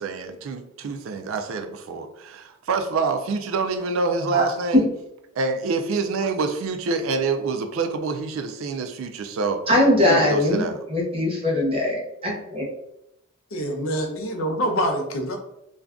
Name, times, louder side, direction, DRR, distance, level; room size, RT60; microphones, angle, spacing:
voice 1, 0.0-4.8 5.4-9.7 10.0-10.8, right 4 dB, 65° right, 0.3 m, -26 dB
voice 2, 9.7-10.6 10.9-12.6, left 1 dB, 25° right, 0.7 m, -21 dB
voice 3, 13.5-15.4, equal, 70° left, 0.6 m, -25 dB
2.5 x 2.3 x 3.4 m
head